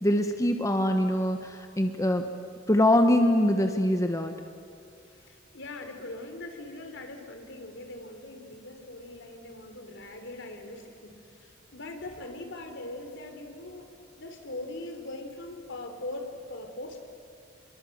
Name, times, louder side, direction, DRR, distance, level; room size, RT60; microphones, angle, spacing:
voice 1, 0.0-2.2 2.7-4.3, left 1 dB, 15° left, 6 dB, 1.1 m, -23 dB
voice 2, 5.1-13.9 14.2-17.0, left 2 dB, 65° left, 6 dB, 3.4 m, -41 dB
28.0 x 22.5 x 7.9 m, 2.5 s
head